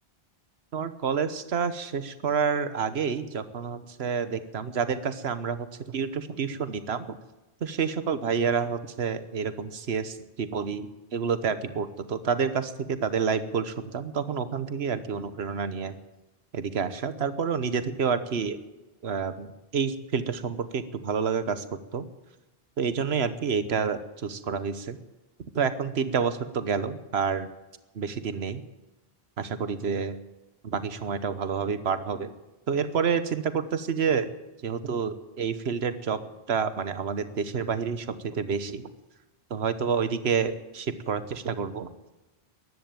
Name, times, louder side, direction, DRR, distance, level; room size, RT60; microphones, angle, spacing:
voice 1, 0.7-7.2 7.6-15.9 16.5-18.6 19.0-21.6 21.9-22.1 22.8-25.0 25.5-27.5 27.9-28.6 29.4-30.2 30.6-32.3 32.7-34.3 34.6-36.2 36.5-38.9 39.5-41.9, right 6 dB, 80° right, 12 dB, 1.3 m, -29 dB
14.0 x 11.0 x 9.0 m, 1.1 s
omnidirectional pair, 1.1 m